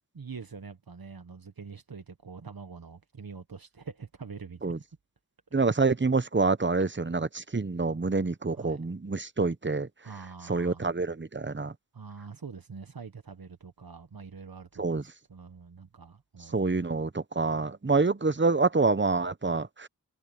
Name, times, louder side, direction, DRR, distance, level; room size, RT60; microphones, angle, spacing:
voice 1, 0.1-4.6 8.5-8.8 10.0-10.9 11.9-16.7, right 5 dB, 85° right, 1.1 m, -45 dB
voice 2, 5.5-9.9 10.5-11.7 14.8-15.0 16.5-19.9, right 3 dB, 35° right, 0.9 m, -27 dB
wide cardioid pair, 40°, 34 cm